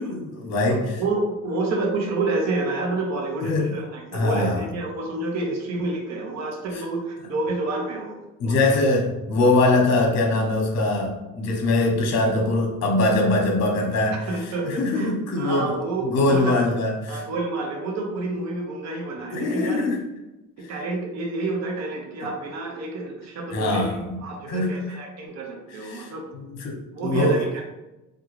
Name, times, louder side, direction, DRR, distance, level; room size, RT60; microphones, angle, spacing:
voice 1, 0.0-1.0 3.4-3.8 4.1-4.6 6.7-6.8 8.4-14.2 14.6-15.8 16.0-17.2 19.3-20.0 23.5-24.2 24.5-25.0 25.7-27.4, left 2 dB, 50° left, 1 dB, 0.9 m, -22 dB
voice 2, 0.7-8.2 8.5-8.8 9.4-9.6 14.3-16.7 17.1-19.8 20.6-23.9 24.2-26.3 26.9-27.6, right 2 dB, 50° right, 1 dB, 0.8 m, -29 dB
3.6 x 2.4 x 3.1 m, 0.99 s
cardioid pair, 120°, 34 cm